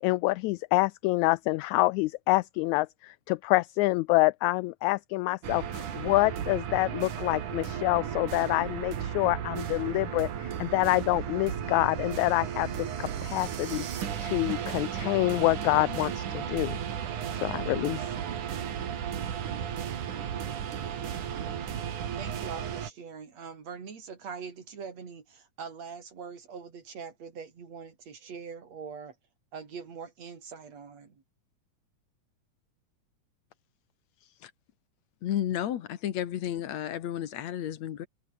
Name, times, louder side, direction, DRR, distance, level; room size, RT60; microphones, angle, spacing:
voice 1, 0.0-16.8 17.4-18.1, left 20 dB, 80° left, 1.7 m, -27 dB
sound 1, 5.4-22.9, right 9 dB, 75° right, 3.7 m, -34 dB
voice 2, 22.2-29.2 29.5-31.2, right 6 dB, 55° right, 4.8 m, -42 dB
voice 3, 35.2-38.1, left 11 dB, 65° left, 2.4 m, -32 dB
omnidirectional pair, 3.7 m